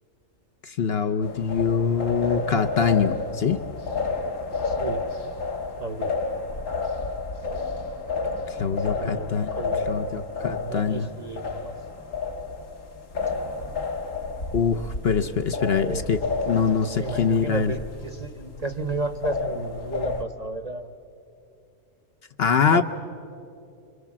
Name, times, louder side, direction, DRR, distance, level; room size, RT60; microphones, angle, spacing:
voice 1, 0.6-3.6 8.5-9.5 9.9-11.1 14.5-16.2 16.5-17.7 22.4-22.8, left 6 dB, 55° left, 8 dB, 0.9 m, -24 dB
sound 1, 1.2-20.2, left 4 dB, 70° left, 1.8 m, -31 dB
voice 2, 4.6-5.0 5.8-6.1 8.7-11.7 15.7-16.0 17.0-20.9 22.7-22.8, right 3 dB, 35° right, 9 dB, 0.8 m, -33 dB
26.0 x 25.5 x 7.4 m, 2.7 s
omnidirectional pair, 1.4 m